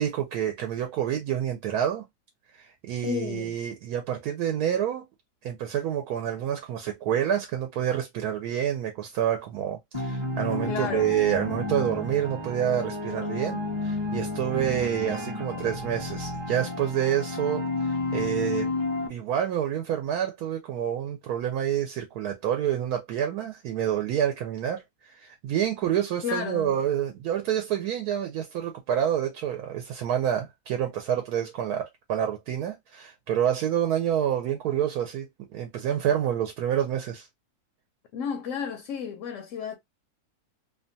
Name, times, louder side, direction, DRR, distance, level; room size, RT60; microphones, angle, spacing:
voice 1, 0.0-2.0 2.5-5.0 5.4-18.7 19.1-37.3, right 10 dB, 75° right, 1.1 m, -28 dB
voice 2, 3.0-3.5 10.6-11.1 26.2-26.8 38.1-39.8, left 7 dB, 65° left, 0.8 m, -32 dB
sound 1, 9.9-19.1, left 2 dB, 25° right, 0.6 m, -31 dB
2.8 x 2.2 x 2.6 m
omnidirectional pair, 1.7 m